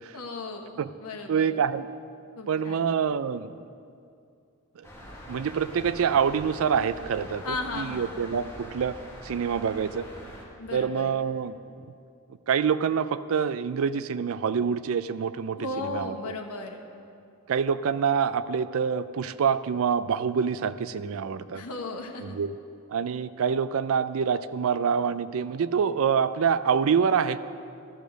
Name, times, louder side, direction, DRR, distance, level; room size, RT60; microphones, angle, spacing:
voice 1, 0.1-1.6 2.3-2.8 7.4-8.1 10.6-11.1 15.6-16.8 21.5-22.4, left 3 dB, 90° left, 2 dB, 1.2 m, -35 dB
voice 2, 1.3-1.9 2.5-3.6 4.8-4.9 5.3-9.0 9.2-10.1 10.7-11.6 12.5-15.6 15.9-16.1 17.5-21.6 22.2-22.5 22.9-27.4, right 7 dB, 70° right, 14 dB, 0.4 m, -26 dB
sound 1, 4.8-10.4, equal, 10° left, 1.7 m, -43 dB
12.5 x 6.9 x 6.3 m, 2.5 s
head